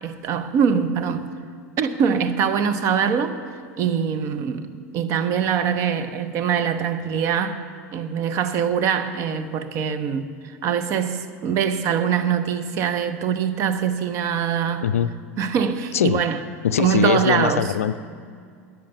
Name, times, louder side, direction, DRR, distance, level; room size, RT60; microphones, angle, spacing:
voice 1, 0.0-1.3 1.8-3.4 3.8-14.9 15.4-16.4 16.8-17.7, right 7 dB, 40° right, 0.8 m, -23 dB
voice 2, 14.8-15.1 15.9-16.2 16.6-18.0, left 9 dB, 65° left, 0.4 m, -21 dB
14.0 x 9.3 x 6.9 m
figure-of-eight pair, 85°, 8 cm